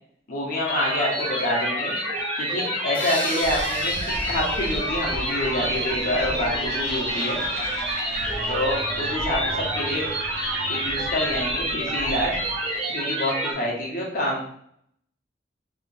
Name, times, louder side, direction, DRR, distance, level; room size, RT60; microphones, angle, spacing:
voice 1, 0.3-1.9 2.3-7.4 8.5-10.0 10.7-12.4 12.9-14.4, left 1 dB, 55° left, -4 dB, 1.2 m, -27 dB
sound 1, 0.7-13.5, right 1 dB, 35° right, 1.0 m, -28 dB
sound 2, 2.9-6.0, left 2 dB, 10° left, 0.5 m, -36 dB
sound 3, 3.4-12.8, right 1 dB, 65° right, 0.7 m, -35 dB
3.2 x 2.6 x 3.3 m, 0.69 s
head